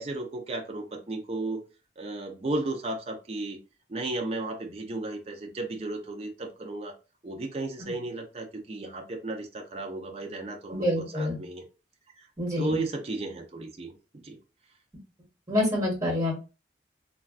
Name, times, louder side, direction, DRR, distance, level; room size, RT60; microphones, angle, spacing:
voice 1, 0.0-1.6 2.0-3.6 3.9-6.9 7.2-11.6 12.6-13.9 14.2-14.4, right 2 dB, 35° right, 3 dB, 0.4 m, -34 dB
voice 2, 10.7-11.4 12.4-12.8 15.5-16.3, left 1 dB, 20° right, -4 dB, 1.6 m, -27 dB
3.3 x 2.3 x 2.3 m, 0.31 s
head